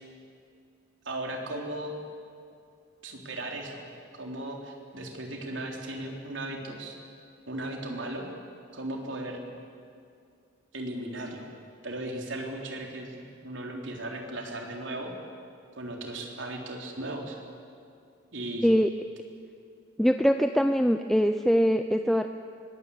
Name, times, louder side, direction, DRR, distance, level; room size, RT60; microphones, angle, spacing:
voice 1, 1.1-2.0 3.0-3.9 4.1-7.0 7.5-8.3 8.7-9.4 10.7-11.5 11.8-15.1 15.8-17.4 18.3-18.7, right 1 dB, 75° right, 1 dB, 3.8 m, -36 dB
voice 2, 20.0-22.3, equal, ahead, 7 dB, 0.5 m, -23 dB
23.5 x 19.5 x 8.7 m, 2.4 s
head